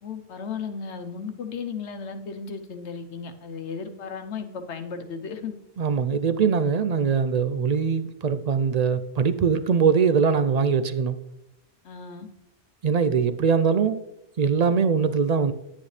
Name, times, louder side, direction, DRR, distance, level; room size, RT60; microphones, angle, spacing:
voice 1, 0.0-5.6 11.8-12.3, left 5 dB, 85° left, 1.2 m, -35 dB
voice 2, 5.8-11.2 12.8-14.0 14.4-15.5, right 6 dB, 55° right, 0.4 m, -22 dB
10.5 x 9.5 x 3.2 m
omnidirectional pair, 1.1 m